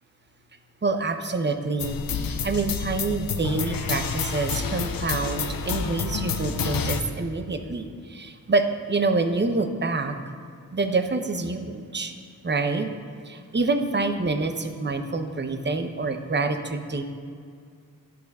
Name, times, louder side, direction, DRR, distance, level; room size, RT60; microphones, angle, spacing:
voice 1, 0.8-10.1 10.7-12.1 12.4-12.9 13.2-17.0, right 3 dB, 30° right, 8 dB, 0.8 m, -27 dB
sound 1, 1.8-7.0, left 6 dB, 75° left, 0.7 m, -29 dB
11.0 x 6.8 x 5.4 m, 2.2 s
wide cardioid pair, 75°, 35 cm